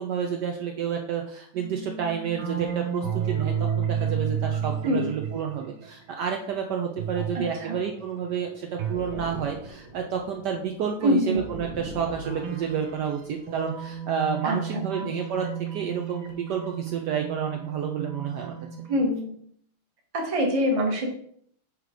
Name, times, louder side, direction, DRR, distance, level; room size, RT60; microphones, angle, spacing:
voice 1, 0.0-18.5, right 7 dB, 70° right, 3 dB, 1.1 m, -30 dB
sound 1, 1.5-6.3 7.0-10.7 11.3-19.0, right 7 dB, 85° right, 1.8 m, -33 dB
voice 2, 7.3-7.8 11.0-11.4 14.4-14.6 18.9-19.3 20.1-21.1, equal, 25° right, 1 dB, 0.8 m, -24 dB
6.5 x 3.2 x 4.9 m, 0.66 s
omnidirectional pair, 2.2 m